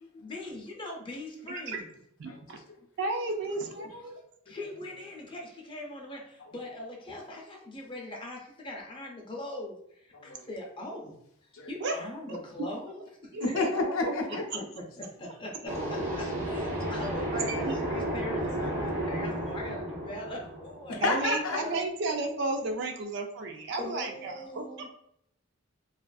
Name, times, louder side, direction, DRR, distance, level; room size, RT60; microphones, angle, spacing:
voice 1, 0.2-1.9 3.6-4.1 4.5-11.1 11.7-13.7 14.7-21.8 23.8-24.9, left 1 dB, 25° left, -1 dB, 0.5 m, -41 dB
voice 2, 2.2-2.6 3.0-4.2 11.8-12.0 13.3-14.1 17.4-17.7 21.0-24.9, right 3 dB, 55° right, 4 dB, 0.4 m, -33 dB
voice 3, 13.4-14.4 20.9-21.6, left 3 dB, 75° left, 1 dB, 0.5 m, -30 dB
sound 1, 15.7-21.3, right 1 dB, 35° right, 0.8 m, -33 dB
2.4 x 2.4 x 2.3 m, 0.73 s
head